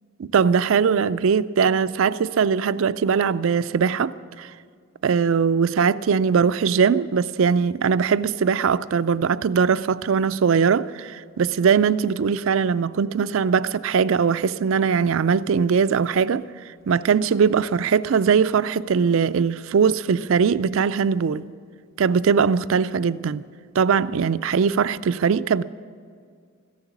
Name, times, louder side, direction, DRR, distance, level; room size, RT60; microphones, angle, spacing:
voice 1, 0.2-4.5 5.0-16.4 16.9-21.4 22.0-23.4 23.8-25.6, right 6 dB, 65° right, 0.4 m, -21 dB
14.5 x 10.5 x 7.2 m
head